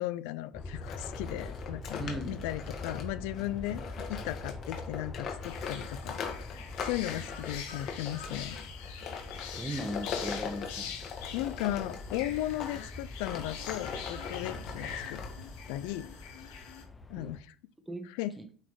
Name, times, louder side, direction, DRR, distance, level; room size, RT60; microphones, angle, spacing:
voice 1, 0.0-3.8 4.1-6.2 6.5-8.6 11.3-15.2 15.7-16.1 17.1-17.5 18.1-18.3, left 14 dB, 75° left, 14 dB, 0.5 m, -36 dB
sound 1, 0.5-17.4, left 2 dB, 15° left, 0.8 m, -44 dB
sound 2, 0.8-12.8 13.2-15.7, left 6 dB, 45° left, 1.9 m, -41 dB
voice 2, 2.0-2.3 9.5-10.9 17.1-17.3 17.9-18.1 18.4-18.5, equal, 5° right, 7 dB, 1.2 m, -37 dB
sound 3, 5.4-16.8, left 7 dB, 90° left, 2.4 m, -44 dB
8.2 x 4.0 x 4.9 m, 0.43 s
cardioid pair, 140°, 0 cm